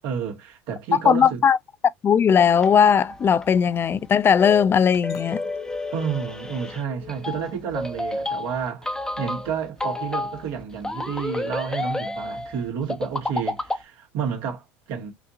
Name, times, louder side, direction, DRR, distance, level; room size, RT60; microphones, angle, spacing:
voice 1, 0.0-1.4 5.9-15.1, right 7 dB, 65° right, 1.9 m, -30 dB
voice 2, 1.1-1.6 2.0-5.4, left 7 dB, 30° left, 0.4 m, -18 dB
sound 1, 2.5-13.8, left 2 dB, 10° left, 1.0 m, -31 dB
Chink clink, 5.1-9.4 9.9-10.3, left 12 dB, 55° left, 1.0 m, -45 dB
5.8 x 2.7 x 2.5 m
hypercardioid pair, 85°, 7 cm